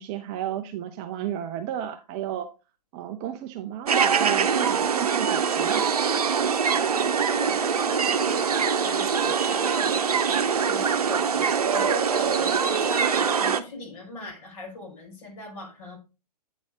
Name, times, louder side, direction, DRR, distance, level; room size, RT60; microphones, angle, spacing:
voice 1, 0.0-2.5 2.9-5.9, right 11 dB, 20° right, 0.4 m, -33 dB
sound 1, 3.9-13.6, right 6 dB, 70° right, 0.8 m, -23 dB
voice 2, 6.7-16.0, left 2 dB, 45° left, 4.6 m, -39 dB
8.9 x 4.1 x 3.6 m
figure-of-eight pair, 120°, 20 cm